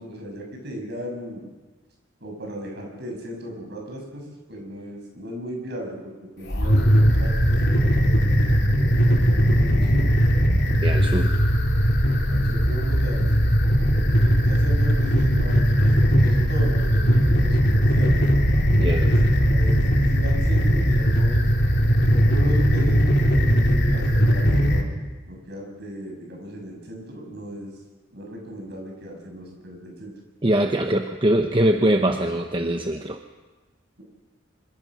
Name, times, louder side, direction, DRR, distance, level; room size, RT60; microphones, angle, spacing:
voice 1, 0.0-1.5 2.2-10.1 10.6-11.3 12.3-18.2 18.8-21.5 22.1-24.9 25.3-27.7 28.1-30.1, equal, 55° right, 1 dB, 7.0 m, -36 dB
sound 1, 6.5-24.8, equal, 55° left, 3.3 m, -19 dB
voice 2, 10.8-11.3 18.7-19.1 30.4-33.2, right 1 dB, 25° right, 5 dB, 1.0 m, -22 dB
25.5 x 24.5 x 6.3 m, 1.2 s
head